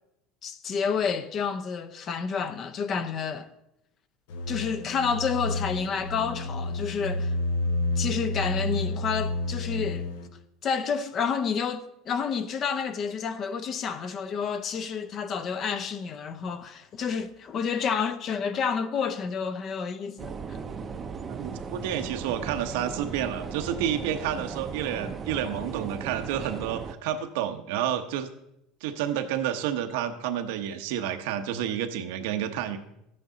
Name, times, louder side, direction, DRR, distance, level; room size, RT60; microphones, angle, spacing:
voice 1, 0.4-3.5 4.5-7.3 8.0-10.1 10.6-20.6, left 6 dB, 35° left, 0.5 m, -29 dB
sound 1, 4.3-10.3, left 2 dB, 85° left, 1.0 m, -30 dB
sound 2, 20.2-26.9, right 5 dB, 25° right, 0.6 m, -37 dB
voice 2, 21.3-28.3 28.8-32.8, right 10 dB, 80° right, 0.9 m, -30 dB
12.5 x 8.7 x 3.9 m
cardioid pair, 155°, 0 cm